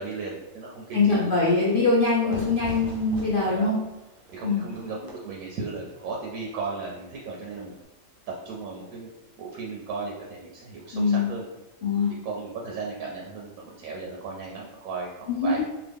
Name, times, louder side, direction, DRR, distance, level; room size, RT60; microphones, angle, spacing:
voice 1, 0.0-1.7 2.2-2.3 3.5-3.8 4.3-7.7 8.3-9.1 9.4-11.5 12.1-15.7, right 4 dB, 80° right, -2 dB, 1.0 m, -36 dB
voice 2, 0.9-3.7 4.4-4.6 10.9-11.3 11.8-12.1 15.3-15.7, left 3 dB, 65° left, -5 dB, 0.5 m, -23 dB
Fire / Fireworks, 2.3-7.8, right 1 dB, 65° right, 0.5 m, -43 dB
2.9 x 2.3 x 3.4 m, 0.98 s
omnidirectional pair, 1.5 m